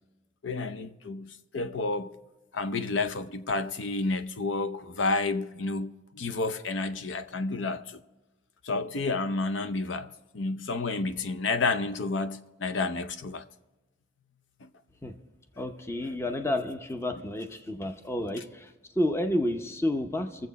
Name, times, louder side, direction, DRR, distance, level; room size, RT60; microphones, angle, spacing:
voice 1, 0.4-2.2 2.5-8.0 8.6-10.1 10.3-13.5 14.6-14.7 16.0-16.2, left 3 dB, 70° left, 0.6 m, -30 dB
voice 2, 15.6-18.7 19.0-20.5, left 1 dB, 15° left, 0.7 m, -30 dB
22.5 x 7.6 x 4.1 m
head